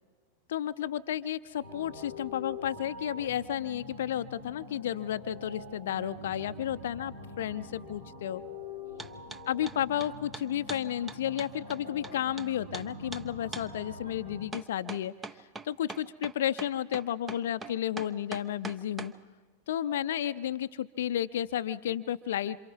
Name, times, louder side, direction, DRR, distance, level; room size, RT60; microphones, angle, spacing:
voice 1, 0.5-8.4 9.5-15.1 15.6-19.1 19.7-22.6, left 11 dB, 60° left, 13 dB, 0.6 m, -32 dB
sound 1, 1.6-14.5, left 2 dB, 75° right, 5.3 m, -45 dB
sound 2, 9.0-9.4 9.7-12.5 12.7-12.9 13.1-13.2 13.5-13.7 14.5-19.1, right 3 dB, 15° right, 0.8 m, -41 dB
27.5 x 27.5 x 3.7 m, 1.5 s
figure-of-eight pair, 90°, 0 cm